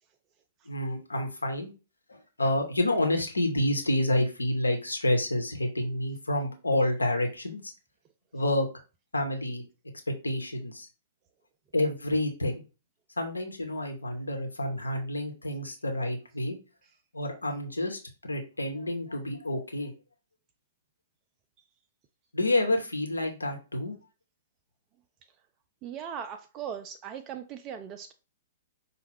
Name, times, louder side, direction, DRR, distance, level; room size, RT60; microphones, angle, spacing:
voice 1, 0.7-1.7 2.1-7.7 8.3-8.7 9.1-9.6 10.2-10.9 11.7-12.6 13.2-16.6 17.1-19.9 22.3-23.9, left 1 dB, 80° left, 1.0 m, -29 dB
voice 2, 25.8-28.1, right 8 dB, 30° right, 0.3 m, -39 dB
5.3 x 2.3 x 3.4 m
figure-of-eight pair, 110°, 0 cm